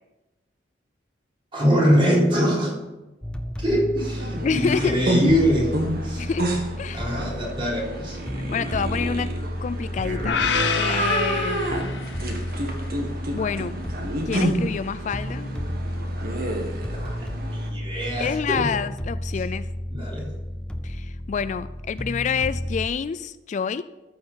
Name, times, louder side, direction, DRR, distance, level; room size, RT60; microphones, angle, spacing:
voice 1, 1.5-2.7 3.6-5.7 6.0-6.3 6.9-8.2 16.9-18.7 19.9-20.3, equal, 30° right, -4 dB, 3.8 m, -23 dB
sound 1, 3.2-22.9, equal, 5° left, 0.7 m, -32 dB
sound 2, 4.0-17.7, right 1 dB, 55° right, 1.8 m, -29 dB
voice 2, 4.4-5.1 6.2-6.5 6.8-7.1 8.4-10.4 10.7-11.9 12.3-12.4 13.3-13.8 14.3-15.5 18.2-19.7 20.8-23.8, left 6 dB, 40° left, 14 dB, 0.3 m, -28 dB
sound 3, 10.2-12.5, left 7 dB, 70° left, 0.7 m, -27 dB
13.5 x 6.5 x 5.7 m, 1.0 s
head